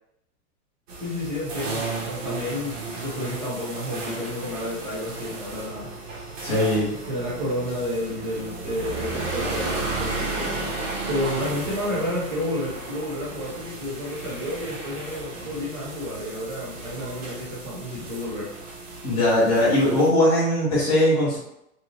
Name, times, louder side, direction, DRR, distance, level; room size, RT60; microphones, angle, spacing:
sound 1, 0.9-20.1, right 3 dB, 55° right, 0.9 m, -34 dB
voice 1, 1.0-5.9 7.1-10.5 11.1-18.5, left 1 dB, 15° right, -6 dB, 0.8 m, -31 dB
voice 2, 6.4-7.0 19.0-21.4, left 1 dB, 10° left, -11 dB, 0.4 m, -20 dB
2.8 x 2.3 x 3.0 m, 0.79 s
hypercardioid pair, 155°, 46 cm